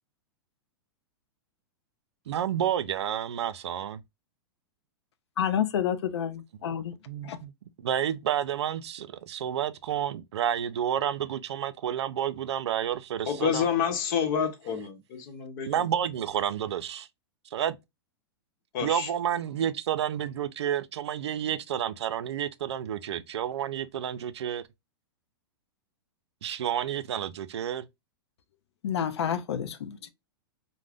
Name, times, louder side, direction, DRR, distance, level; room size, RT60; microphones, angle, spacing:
voice 1, 2.3-4.0 6.7-7.5 7.8-13.7 15.7-17.1 17.5-17.8 18.8-24.6 26.4-27.9, right 10 dB, 85° right, 0.4 m, -30 dB
voice 2, 5.4-7.0 7.2-7.4 28.8-30.1, left 9 dB, 80° left, 0.5 m, -29 dB
voice 3, 13.3-15.9 18.7-19.1, left 7 dB, 50° left, 0.8 m, -29 dB
2.5 x 2.1 x 3.3 m
hypercardioid pair, 125°, 14 cm